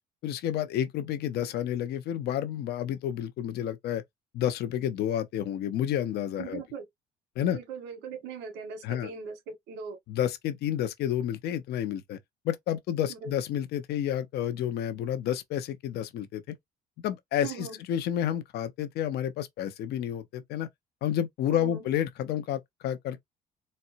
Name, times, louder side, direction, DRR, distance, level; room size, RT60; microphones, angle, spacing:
voice 1, 0.2-4.0 4.3-6.6 7.4-7.6 8.8-9.1 10.1-12.2 12.4-16.5 17.0-20.7 21.0-23.2, left 10 dB, 75° left, 0.8 m, -30 dB
voice 2, 6.4-6.8 7.4-10.0 13.1-13.3 17.4-17.8 21.5-21.8, right 6 dB, 85° right, 1.5 m, -40 dB
4.3 x 2.1 x 2.6 m
cardioid pair, 110°, 17 cm